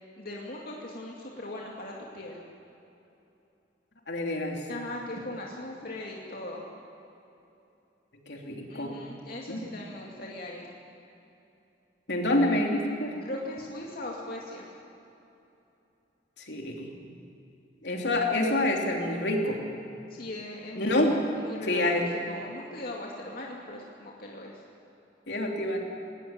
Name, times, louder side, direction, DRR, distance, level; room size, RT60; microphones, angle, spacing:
voice 1, 0.2-2.4 4.7-6.6 8.7-10.7 13.2-14.6 20.1-22.0 22.3-24.5, left 1 dB, 55° left, -2 dB, 2.4 m, -39 dB
voice 2, 4.1-4.6 8.3-8.9 9.5-9.6 12.1-13.1 16.5-16.9 17.8-19.6 20.8-21.1 21.7-22.1 25.3-25.8, left 1 dB, 75° left, 1 dB, 3.2 m, -27 dB
19.5 x 19.0 x 8.9 m, 2.8 s
head